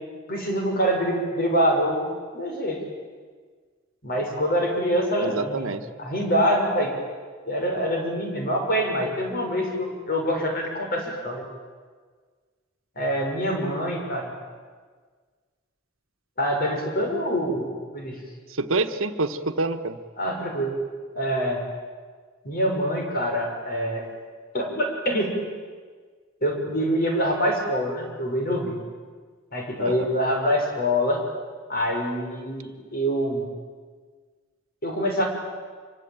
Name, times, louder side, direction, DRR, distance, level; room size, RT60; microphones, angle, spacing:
voice 1, 0.3-2.1 2.3-2.8 4.0-5.7 6.0-6.9 7.5-11.4 13.0-14.3 16.4-18.2 20.2-20.7 21.1-21.6 22.4-24.0 24.5-25.4 26.4-28.8 29.5-31.2 31.7-33.5 34.8-35.3, equal, 45° left, 2 dB, 6.2 m, -25 dB
voice 2, 5.2-5.9 18.5-20.0 29.8-30.1, right 3 dB, 85° right, 8 dB, 1.4 m, -27 dB
26.0 x 23.5 x 9.0 m, 1.5 s
head